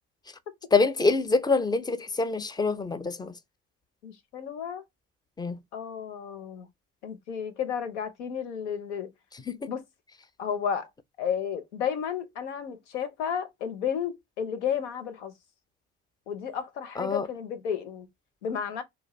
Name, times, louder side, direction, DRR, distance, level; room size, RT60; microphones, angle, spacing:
voice 1, 0.7-3.3 5.4-5.6 9.5-9.7 17.0-17.3, left 4 dB, 10° left, 0.4 m, -25 dB
voice 2, 4.0-4.8 5.7-6.7 7.0-9.1 9.7-9.8 10.4-10.9 11.2-15.3 16.3-18.1 18.4-18.8, left 8 dB, 90° left, 0.7 m, -32 dB
2.6 x 2.2 x 3.0 m
hypercardioid pair, 65°, 34 cm